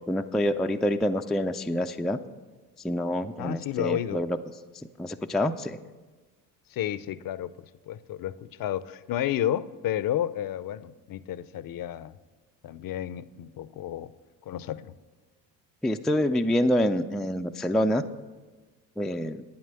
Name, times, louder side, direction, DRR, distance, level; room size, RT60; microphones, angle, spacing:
voice 1, 0.1-2.2 2.8-4.4 5.0-5.8 15.8-18.0 19.0-19.4, left 1 dB, ahead, 6 dB, 0.4 m, -26 dB
voice 2, 3.4-4.2 6.7-7.5 7.9-12.1 12.6-14.1 14.5-14.9, left 11 dB, 45° left, 16 dB, 0.6 m, -31 dB
9.5 x 8.9 x 6.7 m, 1.3 s
hypercardioid pair, 60°, 47 cm